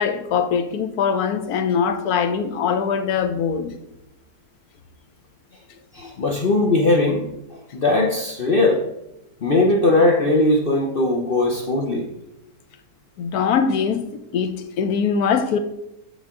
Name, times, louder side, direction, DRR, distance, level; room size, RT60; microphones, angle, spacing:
voice 1, 0.0-3.8 13.2-15.6, left 6 dB, 70° left, 1.2 m, -22 dB
voice 2, 5.9-7.3 7.7-8.8 9.4-12.1, left 2 dB, 50° left, 0.7 m, -19 dB
7.3 x 6.1 x 3.7 m
omnidirectional pair, 1.8 m